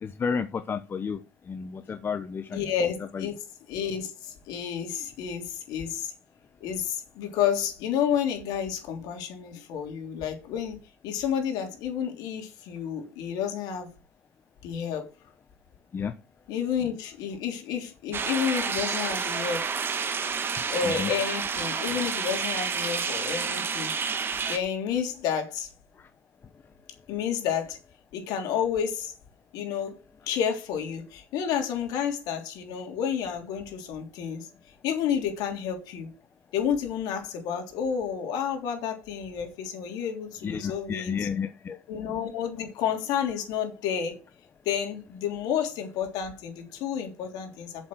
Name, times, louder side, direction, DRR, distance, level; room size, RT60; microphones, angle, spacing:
voice 1, 0.0-1.2 1.5-2.6 3.1-3.3 15.9-16.1 21.0-21.1 26.0-26.1 40.4-41.8, left 6 dB, 30° left, 0.9 m, -31 dB
voice 2, 2.5-3.3 3.7-6.1 6.6-10.8 11.0-13.9 14.6-15.1 16.5-19.6 20.7-23.9 24.5-25.7 27.1-27.8 28.1-29.1 29.5-30.0 30.3-34.5 34.8-36.1 36.5-41.3 41.9-44.2 44.6-47.9, left 8 dB, 60° left, 3.3 m, -30 dB
sound 1, 18.1-24.6, right 5 dB, 30° right, 1.5 m, -29 dB
7.6 x 7.5 x 6.2 m
hypercardioid pair, 80°, 8 cm